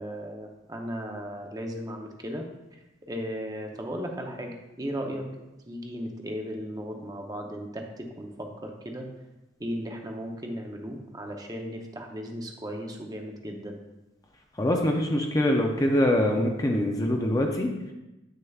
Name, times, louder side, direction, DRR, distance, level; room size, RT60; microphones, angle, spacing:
voice 1, 0.0-2.5 2.7-5.3 5.7-9.1 9.6-13.8, equal, 20° right, 2 dB, 0.7 m, -36 dB
voice 2, 14.6-17.7, left 1 dB, 20° left, 2 dB, 0.5 m, -24 dB
8.8 x 6.5 x 2.3 m, 0.99 s
head